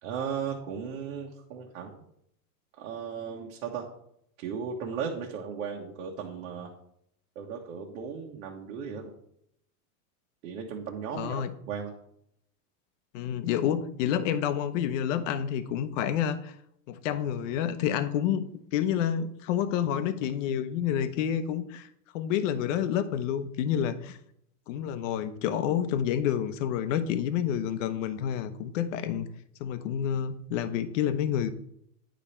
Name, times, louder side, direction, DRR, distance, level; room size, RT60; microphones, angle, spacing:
voice 1, 0.0-2.0 2.8-3.9 4.4-6.7 7.3-9.1 10.4-12.0, right 6 dB, 65° right, -1 dB, 1.4 m, -36 dB
voice 2, 11.1-11.5 13.1-16.6 16.9-21.9 22.1-24.2 24.7-29.3 29.6-31.5, left 9 dB, 55° left, 11 dB, 0.9 m, -29 dB
9.3 x 5.3 x 4.3 m, 0.72 s
supercardioid pair, 150°, 45 cm